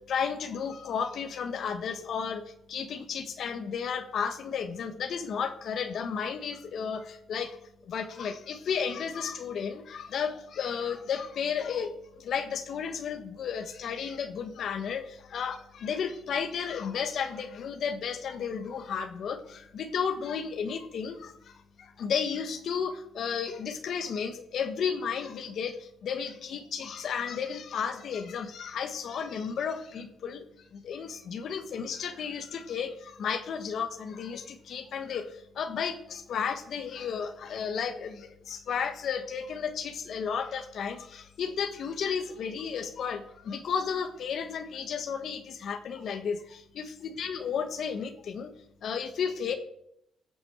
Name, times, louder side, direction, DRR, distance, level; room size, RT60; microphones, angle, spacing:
voice 1, 0.0-2.4 2.7-7.6 7.8-21.5 21.8-30.5 30.7-48.5 48.8-49.5, left 6 dB, 65° left, 8 dB, 1.3 m, -33 dB
15.0 x 6.2 x 7.8 m, 0.75 s
cardioid pair, 90°, 0 cm